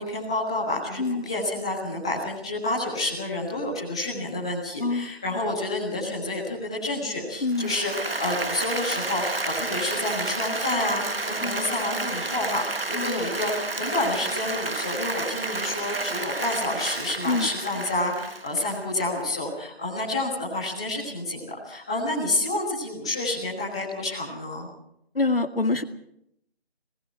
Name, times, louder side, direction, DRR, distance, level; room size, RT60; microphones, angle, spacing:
voice 1, 0.0-24.7, left 2 dB, 5° left, -7 dB, 1.6 m, -29 dB
voice 2, 4.8-5.1 7.4-7.7 11.4-11.7 12.9-13.3 17.3-17.5 25.2-25.8, left 3 dB, 60° left, 8 dB, 2.0 m, -26 dB
Applause, 7.5-19.2, right 2 dB, 60° right, 1.5 m, -31 dB
28.5 x 20.5 x 4.7 m, 0.74 s
figure-of-eight pair, 170°, 32 cm